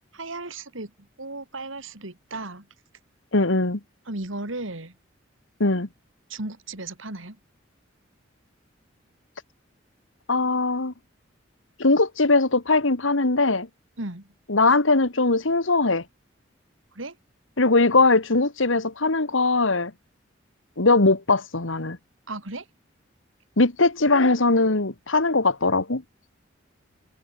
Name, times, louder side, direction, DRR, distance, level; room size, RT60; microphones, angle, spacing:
voice 1, 0.1-0.9 1.2-2.7 4.1-4.9 6.3-7.4 14.0-14.3 16.9-17.2 22.3-22.6, right 2 dB, 85° right, 3.2 m, -35 dB
voice 2, 3.3-3.8 5.6-5.9 10.3-10.9 11.8-13.7 14.5-16.0 17.6-19.9 20.8-22.0 23.6-26.0, left 3 dB, 80° left, 1.8 m, -20 dB
head